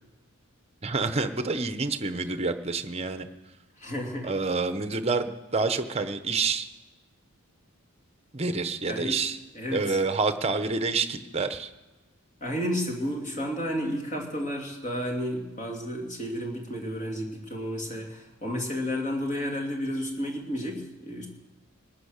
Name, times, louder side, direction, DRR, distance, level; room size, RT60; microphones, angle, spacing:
voice 1, 0.8-3.3 4.2-6.7 8.3-9.4 9.7-11.7, right 4 dB, 30° right, 9 dB, 0.9 m, -28 dB
voice 2, 3.8-4.3 8.9-9.1 9.5-10.0 12.4-21.3, equal, 35° left, 1 dB, 2.6 m, -32 dB
19.5 x 8.7 x 6.6 m, 1.1 s
head